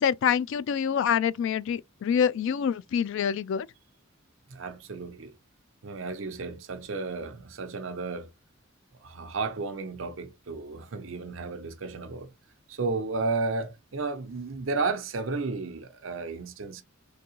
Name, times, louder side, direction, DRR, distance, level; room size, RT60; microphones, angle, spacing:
voice 1, 0.0-3.7, left 7 dB, 65° left, 0.3 m, -26 dB
voice 2, 4.5-5.3 5.8-8.3 9.0-12.3 12.7-16.8, right 3 dB, 70° right, 0.7 m, -33 dB
3.7 x 2.7 x 2.9 m
head